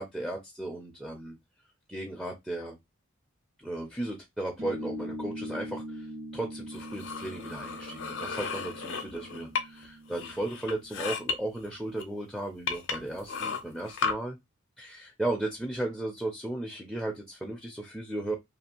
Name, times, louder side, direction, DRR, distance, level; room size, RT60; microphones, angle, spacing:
voice 1, 0.0-1.4 1.9-2.8 3.6-14.4 14.8-18.3, right 1 dB, ahead, 0.4 m, -35 dB
sound 1, 4.6-11.5, equal, 65° right, 1.2 m, -42 dB
sound 2, 6.7-9.9 10.2-11.4 12.0-12.1 12.7-14.1, left 5 dB, 60° left, 0.5 m, -34 dB
2.5 x 2.4 x 2.8 m
head